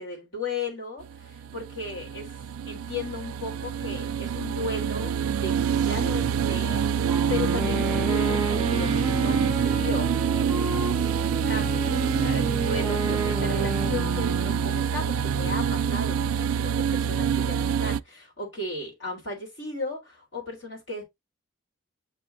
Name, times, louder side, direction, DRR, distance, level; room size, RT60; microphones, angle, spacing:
voice 1, 0.0-2.4 2.7-11.9 12.2-21.0, left 2 dB, 60° left, 3.5 m, -36 dB
sound 1, 1.0-18.0, right 7 dB, 85° right, 0.3 m, -26 dB
Wind instrument woodwind instrument, 7.0-14.9, right 2 dB, ahead, 1.5 m, -31 dB
6.9 x 5.6 x 2.5 m
head